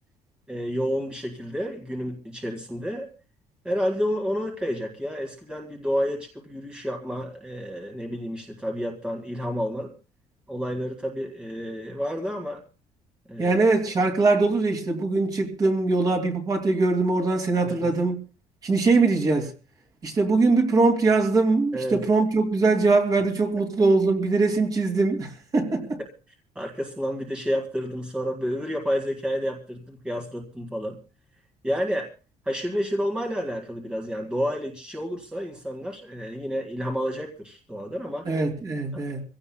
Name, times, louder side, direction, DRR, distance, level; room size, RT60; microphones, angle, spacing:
voice 1, 0.5-3.1 3.6-9.9 10.5-12.6 13.3-13.6 17.6-17.8 21.7-22.0 26.6-31.0 31.6-32.1 32.5-38.3 38.9-39.0, equal, 5° right, 2.0 m, -30 dB
voice 2, 13.4-18.1 18.6-19.5 20.0-26.0 38.3-39.2, right 3 dB, 30° right, 2.8 m, -22 dB
25.5 x 16.5 x 2.3 m
cardioid pair, 165°, 13 cm